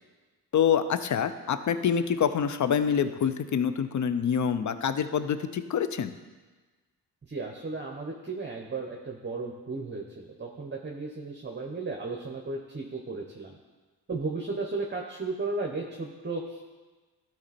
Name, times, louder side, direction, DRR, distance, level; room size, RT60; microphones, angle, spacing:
voice 1, 0.5-6.1, left 7 dB, 45° left, 12 dB, 0.7 m, -26 dB
voice 2, 7.2-13.5 14.1-16.7, right 3 dB, 25° right, 1 dB, 1.1 m, -35 dB
12.0 x 4.3 x 4.3 m, 1.3 s
supercardioid pair, 60°, 42 cm